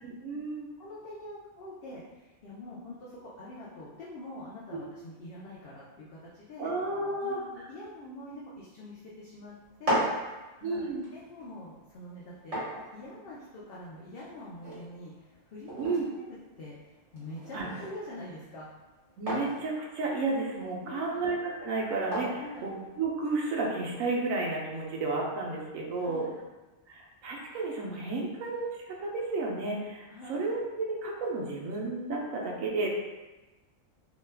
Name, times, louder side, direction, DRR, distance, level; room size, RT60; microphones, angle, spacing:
voice 1, 0.0-0.7 4.7-4.8 6.6-7.4 10.6-11.0 15.8-16.0 17.5-17.7 19.2-26.2 26.9-32.9, right 3 dB, 80° right, -2 dB, 1.1 m, -32 dB
voice 2, 0.8-6.7 7.2-9.5 9.8-12.6 12.9-16.0 16.6-18.7 20.8-21.2 22.3-22.7 26.0-26.3 30.1-30.4, left 1 dB, 60° left, -6 dB, 0.6 m, -45 dB
sound 1, 9.6-23.5, equal, 30° right, 1.0 m, -38 dB
2.9 x 2.3 x 3.3 m, 1.1 s
omnidirectional pair, 1.4 m